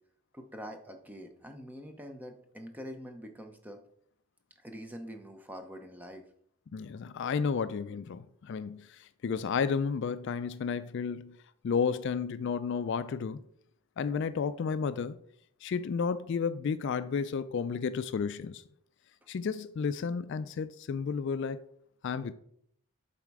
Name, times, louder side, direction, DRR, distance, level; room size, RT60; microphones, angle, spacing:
voice 1, 0.3-3.8 4.6-6.2, equal, 5° right, 0.6 m, -45 dB
voice 2, 6.7-11.4 11.6-13.4 14.0-15.2 15.6-18.6 19.3-21.6 22.0-22.3, left 6 dB, 55° left, 0.3 m, -32 dB
7.4 x 4.2 x 4.7 m
head